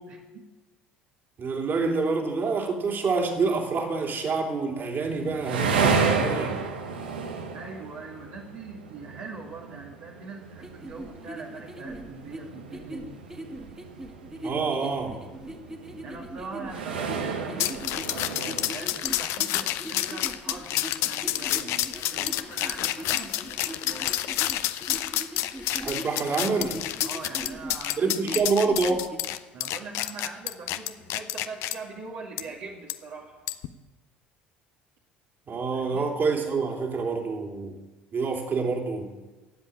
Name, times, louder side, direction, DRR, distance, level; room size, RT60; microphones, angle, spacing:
voice 1, 0.1-0.4 7.5-13.2 16.0-24.1 27.0-28.3 29.5-33.4 35.7-36.2, right 4 dB, 60° right, -3 dB, 2.2 m, -42 dB
voice 2, 1.4-6.6 14.4-15.2 25.8-26.8 28.0-29.1 35.5-37.7 38.1-39.1, right 4 dB, 40° right, 2 dB, 3.1 m, -27 dB
sound 1, 5.0-18.8, right 5 dB, 80° right, 1.3 m, -32 dB
sound 2, 10.6-29.2, right 1 dB, 10° right, 2.0 m, -40 dB
sound 3, 17.6-31.8 32.4-32.5 32.9-33.0 33.5-33.7, left 14 dB, 60° left, 0.7 m, -29 dB
14.0 x 7.8 x 8.7 m, 1.2 s
figure-of-eight pair, 65°, 5 cm